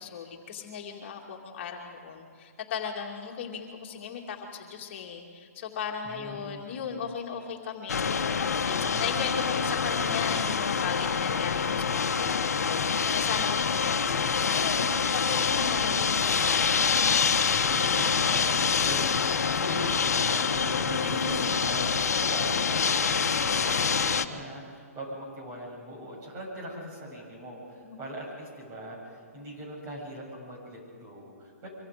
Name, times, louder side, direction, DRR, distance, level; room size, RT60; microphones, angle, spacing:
voice 1, 0.0-16.9 20.9-21.7 27.8-28.0, left 6 dB, 45° left, 0 dB, 2.5 m, -37 dB
voice 2, 6.0-7.1 17.5-31.7, equal, 25° right, -2 dB, 7.8 m, -40 dB
sound 1, 7.9-24.3, left 6 dB, 85° left, 1.2 m, -26 dB
25.0 x 24.5 x 5.2 m, 2.3 s
hypercardioid pair, 150°, 8 cm